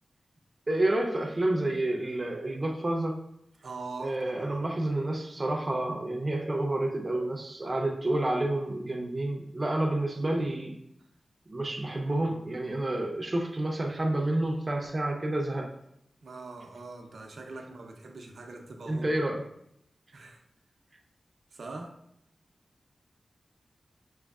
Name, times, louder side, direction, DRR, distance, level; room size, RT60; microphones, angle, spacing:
voice 1, 0.7-3.2 4.0-10.8 11.5-15.7 18.9-19.4, right 1 dB, 35° right, 1 dB, 0.6 m, -29 dB
voice 2, 3.6-4.5 16.2-19.1 20.1-20.4 21.5-22.0, right 3 dB, 75° right, 3 dB, 0.6 m, -42 dB
6.2 x 3.0 x 2.4 m, 0.77 s
wide cardioid pair, 80°, 0 cm